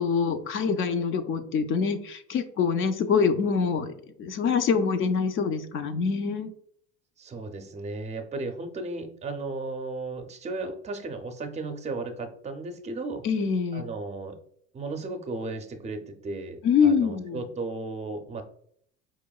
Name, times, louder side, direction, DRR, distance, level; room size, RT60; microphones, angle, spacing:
voice 1, 0.0-6.5 13.2-13.9 16.6-17.4, left 6 dB, 35° left, 10 dB, 0.4 m, -25 dB
voice 2, 7.2-13.2 13.7-14.4 14.7-18.4, right 3 dB, 20° right, 7 dB, 0.5 m, -35 dB
4.6 x 3.0 x 2.3 m, 0.66 s
hypercardioid pair, 90°, 35 cm